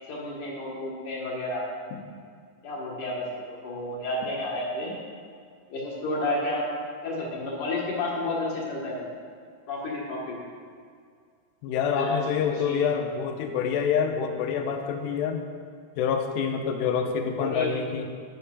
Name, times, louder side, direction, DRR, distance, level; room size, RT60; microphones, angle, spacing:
voice 1, 0.1-1.7 2.6-4.9 5.7-6.6 7.0-9.1 9.7-10.4 12.0-12.8 17.4-17.7, left 2 dB, 55° left, -4 dB, 3.0 m, -31 dB
voice 2, 11.6-15.4 16.0-18.1, left 7 dB, 85° left, 5 dB, 2.9 m, -27 dB
10.5 x 6.7 x 5.5 m, 2.2 s
omnidirectional pair, 4.9 m